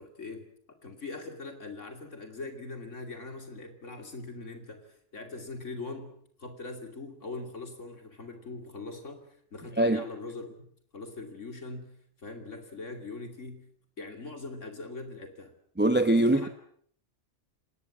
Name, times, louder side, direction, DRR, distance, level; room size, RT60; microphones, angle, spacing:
voice 1, 0.0-10.5 10.9-11.9 12.2-13.6 14.0-15.5 16.1-16.5, left 3 dB, 75° left, 3.0 m, -41 dB
voice 2, 15.8-16.5, right 1 dB, 10° right, 0.8 m, -22 dB
27.0 x 19.5 x 7.3 m
omnidirectional pair, 1.3 m